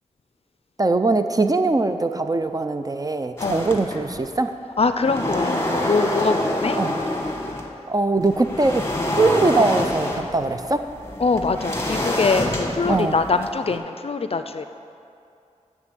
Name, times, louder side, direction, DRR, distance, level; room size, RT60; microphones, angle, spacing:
voice 1, 0.8-4.5 6.8-6.9 7.9-8.8 9.2-10.9 12.9-13.2, right 3 dB, 30° right, 8 dB, 0.4 m, -21 dB
sound 1, 3.4-4.3 4.8-7.7 8.2-13.8, left 1 dB, 20° left, 1.2 m, -26 dB
voice 2, 4.8-6.8 11.2-14.6, left 4 dB, 50° left, 9 dB, 0.4 m, -23 dB
10.5 x 3.6 x 6.8 m, 2.5 s
cardioid pair, 45°, 13 cm